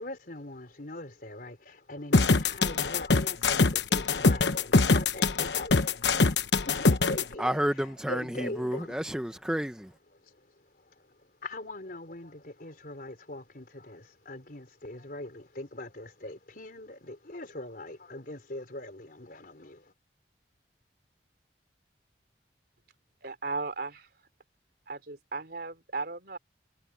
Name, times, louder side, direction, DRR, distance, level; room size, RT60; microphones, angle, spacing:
voice 1, 0.0-7.6 8.1-9.0 11.4-19.8, left 1 dB, 55° left, 3.8 m, -41 dB
sound 1, 2.1-7.2, left 3 dB, 80° left, 1.1 m, -23 dB
voice 2, 7.4-9.9, equal, 5° right, 0.9 m, -30 dB
voice 3, 23.2-24.1 24.9-26.4, right 3 dB, 60° right, 3.8 m, -36 dB
head